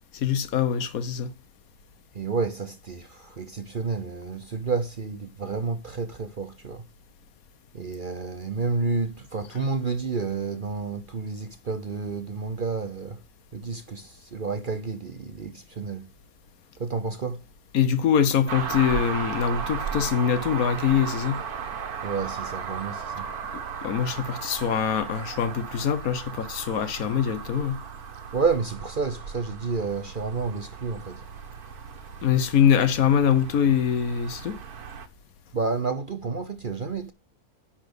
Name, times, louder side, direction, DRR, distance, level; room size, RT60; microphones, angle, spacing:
voice 1, 0.1-1.3 17.7-21.4 23.8-27.8 32.2-34.6, left 8 dB, 70° left, 1.3 m, -23 dB
voice 2, 2.1-6.8 7.7-13.2 13.5-16.1 16.8-17.4 22.0-23.3 28.3-31.2 35.5-37.1, right 4 dB, 45° right, 0.8 m, -30 dB
sound 1, 18.5-35.1, right 6 dB, 80° right, 1.6 m, -36 dB
10.0 x 4.3 x 6.2 m
omnidirectional pair, 1.6 m